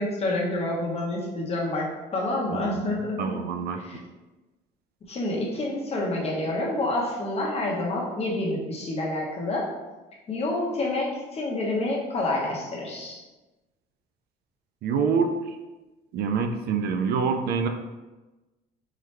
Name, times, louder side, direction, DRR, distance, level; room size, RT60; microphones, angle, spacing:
voice 1, 0.0-3.3 3.7-4.0 5.1-9.7 10.3-13.2, left 2 dB, 35° left, -2 dB, 1.0 m, -28 dB
voice 2, 3.2-3.8 14.8-15.6 16.1-17.7, right 5 dB, 70° right, 6 dB, 0.5 m, -26 dB
3.8 x 3.0 x 3.2 m, 1.1 s
cardioid pair, 110°, 17 cm